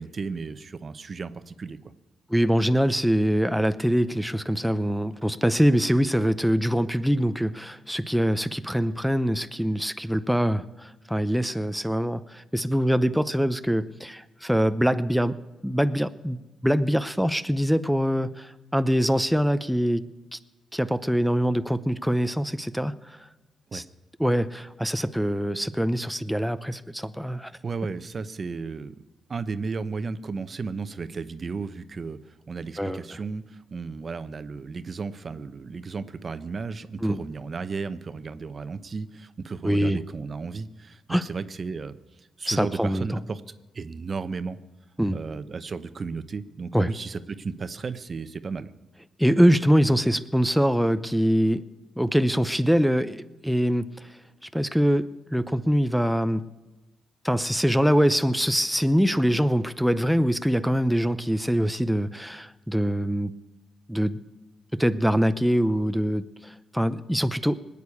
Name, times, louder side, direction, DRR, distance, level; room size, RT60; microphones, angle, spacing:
voice 1, 0.0-1.8 23.7-23.8 27.6-29.0 29.3-44.6 45.1-48.7, right 4 dB, 45° right, 13 dB, 0.8 m, -34 dB
voice 2, 2.3-15.4 15.6-20.1 20.3-20.4 20.7-23.3 23.7-23.8 24.2-27.5 32.8-33.2 37.0-37.2 39.6-40.0 41.1-41.2 42.5-43.1 45.0-45.2 46.7-46.9 49.2-51.6 52.0-56.4 57.2-63.3 63.9-64.2 64.8-67.6, equal, ahead, 11 dB, 0.7 m, -24 dB
20.0 x 8.3 x 8.5 m, 1.1 s
supercardioid pair, 60°, 0 cm